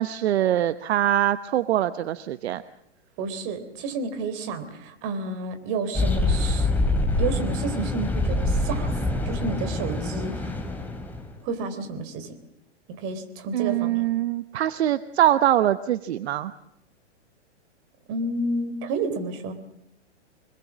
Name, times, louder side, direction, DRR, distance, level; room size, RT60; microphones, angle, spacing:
voice 1, 0.0-2.6 13.5-16.5, right 12 dB, 65° right, 13 dB, 1.0 m, -23 dB
voice 2, 3.2-6.7 7.2-10.5 11.4-12.3 12.9-14.0 18.1-19.5, right 3 dB, 40° right, 8 dB, 3.7 m, -30 dB
sound 1, 5.9-11.3, left 2 dB, 5° left, 3.3 m, -25 dB
26.0 x 21.0 x 7.4 m, 0.82 s
hypercardioid pair, 135°, 35 cm